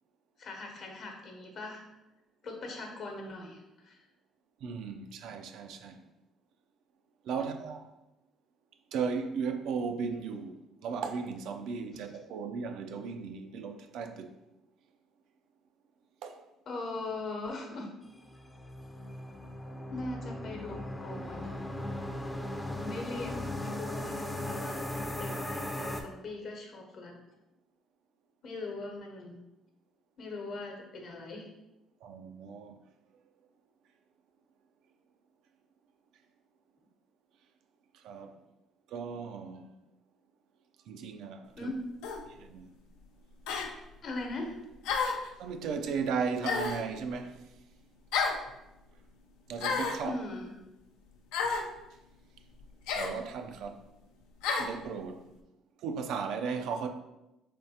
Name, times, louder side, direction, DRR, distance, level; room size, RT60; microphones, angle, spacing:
voice 1, 0.4-1.8 2.4-4.0 7.4-7.5 11.9-12.1 16.7-17.9 19.9-21.6 22.7-27.1 28.4-29.3 30.2-31.5 41.6-41.8 44.0-44.6 50.0-50.5, left 2 dB, 60° left, 0.9 m, -40 dB
voice 2, 4.6-6.0 7.3-7.9 8.9-14.4 16.2-16.4 32.0-32.8 38.0-38.3 38.9-39.7 40.9-41.7 42.4-42.7 45.4-47.4 49.5-50.2 53.0-53.8 54.6-55.3 55.8-56.9, right 5 dB, 75° right, 0.3 m, -36 dB
sound 1, 18.2-26.0, left 1 dB, 10° left, 0.4 m, -38 dB
sound 2, 42.0-42.2 43.5-43.7 44.8-45.3 46.4-46.9 48.1-48.4 49.6-50.0 51.3-51.7 52.9-53.2 54.4-54.7, left 5 dB, 85° left, 0.4 m, -30 dB
3.4 x 3.2 x 2.8 m
supercardioid pair, 75°, 0 cm